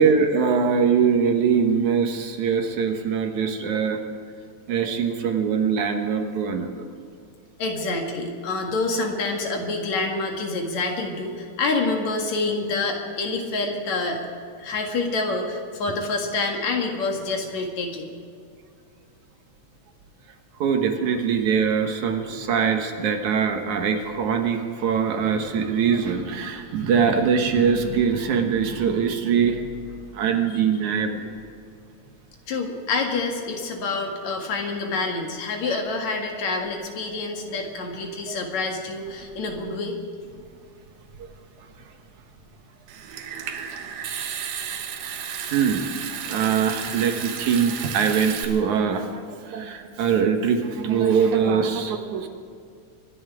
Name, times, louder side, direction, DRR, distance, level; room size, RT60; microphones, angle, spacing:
voice 1, 0.0-4.0 4.7-6.8 20.6-29.6 30.1-31.3 38.3-38.4 45.5-52.3, right 6 dB, 70° right, 4 dB, 2.6 m, -22 dB
voice 2, 7.6-14.2 14.6-18.1 32.5-40.0, left 3 dB, 65° left, 2 dB, 3.0 m, -27 dB
Water tap faucet / Sink (filling or washing) / Trickle dribble, 42.9-48.5, right 8 dB, 90° right, 2.8 m, -33 dB
25.0 x 11.0 x 4.9 m, 2.4 s
omnidirectional pair, 3.6 m